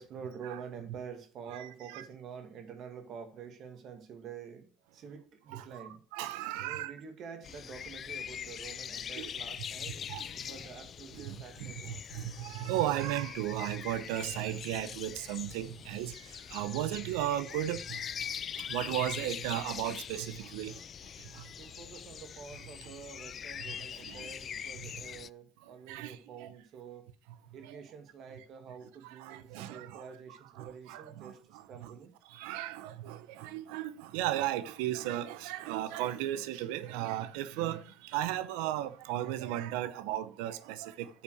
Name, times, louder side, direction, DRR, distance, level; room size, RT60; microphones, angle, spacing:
voice 1, 0.0-6.0 6.6-10.0 10.3-12.0 21.6-27.1 27.5-32.1, right 6 dB, 55° right, 2.0 m, -47 dB
voice 2, 1.5-2.0 5.5-6.9 9.2-9.3 9.8-10.3 11.1-18.0 18.7-20.8 21.3-21.4 23.6-23.7 24.1-24.3 25.9-26.5 27.6-27.8 29.0-30.1 30.6-31.9 32.3-41.2, right 13 dB, 90° right, 0.8 m, -36 dB
sound 1, 7.4-25.3, left 8 dB, 40° left, 0.4 m, -43 dB
8.6 x 5.7 x 6.4 m
cardioid pair, 110°, 0 cm